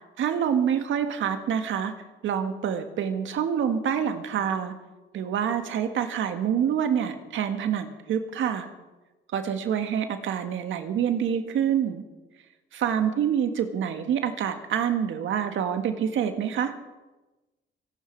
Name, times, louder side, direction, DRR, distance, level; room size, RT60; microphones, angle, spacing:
voice 1, 0.2-1.9 2.2-4.7 5.1-8.7 9.3-12.0 12.7-16.7, right 8 dB, 75° right, 7 dB, 1.8 m, -26 dB
24.0 x 11.5 x 4.7 m, 1.1 s
cardioid pair, 90°, 20 cm